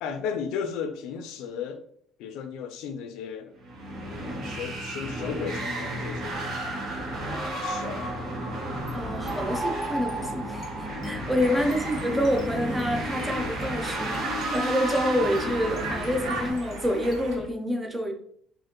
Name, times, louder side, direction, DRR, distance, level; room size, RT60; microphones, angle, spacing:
voice 1, 0.0-1.8 2.2-3.5 4.4-6.6 7.3-8.1 11.5-11.7, left 7 dB, 75° left, 0.5 m, -35 dB
sound 1, 3.6-16.5, right 1 dB, 50° right, 1.3 m, -32 dB
sound 2, 8.9-17.5, left 5 dB, 35° left, 0.7 m, -44 dB
voice 2, 8.9-10.7 11.0-14.3 14.5-18.1, equal, 5° right, 0.6 m, -27 dB
Conversation, 11.4-17.4, right 3 dB, 85° right, 1.1 m, -39 dB
4.7 x 2.5 x 3.0 m
cardioid pair, 145°, 0 cm